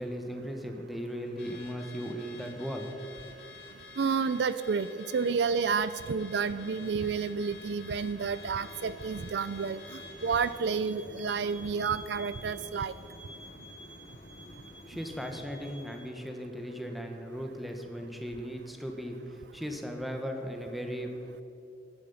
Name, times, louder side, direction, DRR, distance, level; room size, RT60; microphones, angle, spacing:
voice 1, 0.0-2.9 3.2-3.3 14.9-21.1, equal, ahead, 3 dB, 1.4 m, -37 dB
Car / Alarm, 1.4-10.6, left 4 dB, 65° left, 2.2 m, -50 dB
voice 2, 4.0-9.8 10.2-12.9, right 5 dB, 65° right, 15 dB, 0.4 m, -30 dB
Mechanisms, 5.4-16.2, left 1 dB, 40° left, 0.8 m, -52 dB
sound 1, 8.2-16.0, right 1 dB, 20° right, 3.2 m, -52 dB
15.5 x 11.5 x 5.6 m, 2.8 s
head